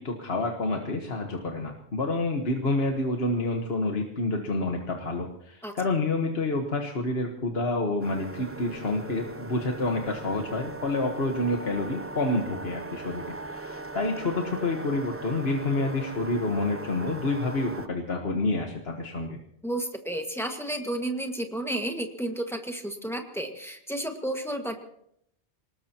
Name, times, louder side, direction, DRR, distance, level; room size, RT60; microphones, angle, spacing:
voice 1, 0.0-19.4, left 2 dB, 65° left, 2 dB, 1.6 m, -28 dB
sound 1, 8.0-17.9, right 2 dB, 15° right, 0.6 m, -39 dB
voice 2, 19.6-24.8, right 1 dB, ahead, 4 dB, 1.7 m, -32 dB
25.0 x 19.5 x 3.0 m, 0.71 s
omnidirectional pair, 1.1 m